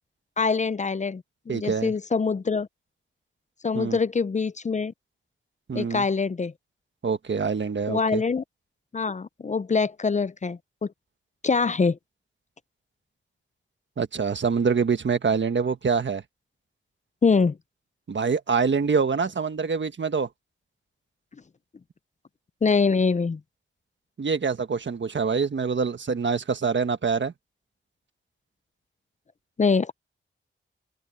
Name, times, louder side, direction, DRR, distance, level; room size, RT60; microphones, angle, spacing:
voice 1, 0.4-2.7 3.6-4.9 5.7-6.5 7.9-8.4 8.9-10.9 11.4-12.0 17.2-17.6 22.6-23.4 29.6-29.9, left 4 dB, 35° left, 0.5 m, -24 dB
voice 2, 1.5-1.9 3.7-4.0 5.7-6.1 7.0-8.2 14.0-16.2 18.1-20.3 24.2-27.3, right 5 dB, 60° right, 1.5 m, -25 dB
open air
wide cardioid pair, 95°, 21 cm